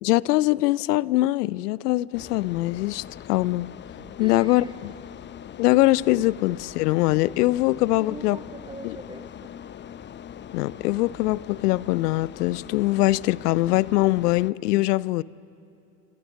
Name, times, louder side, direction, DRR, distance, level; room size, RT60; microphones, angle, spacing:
voice 1, 0.0-3.7 4.2-4.9 5.6-8.4 8.8-8.9 10.5-15.2, left 18 dB, 75° left, 0.6 m, -22 dB
sound 1, 2.1-14.5, left 9 dB, 25° left, 0.6 m, -42 dB
voice 2, 4.2-4.8 8.0-9.6, right 3 dB, 10° right, 0.8 m, -42 dB
28.0 x 26.5 x 7.3 m
hypercardioid pair, 80°, 46 cm